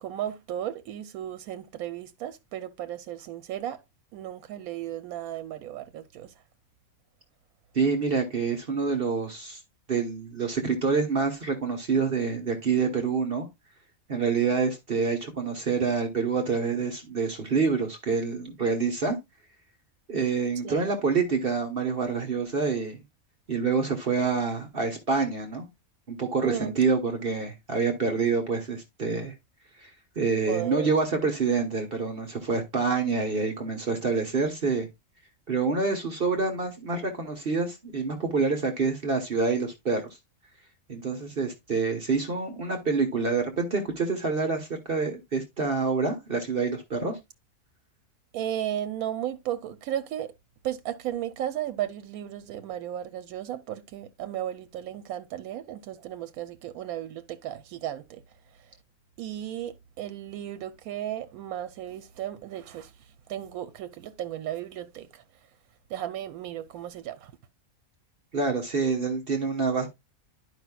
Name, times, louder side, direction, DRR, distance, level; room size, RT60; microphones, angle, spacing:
voice 1, 0.0-3.8 4.1-6.3 20.6-20.8 26.4-26.8 30.5-30.9 48.3-50.3 50.6-58.2 59.2-62.9 63.3-65.2 65.9-67.3, right 11 dB, 85° right, 1.1 m, -35 dB
voice 2, 7.7-9.6 9.9-13.5 14.1-19.2 20.1-23.0 23.5-25.7 26.1-29.3 29.8-29.9 30.2-34.9 35.5-40.0 40.9-47.2 68.3-69.9, right 4 dB, 45° right, 1.1 m, -27 dB
11.0 x 5.1 x 2.2 m
omnidirectional pair, 1.5 m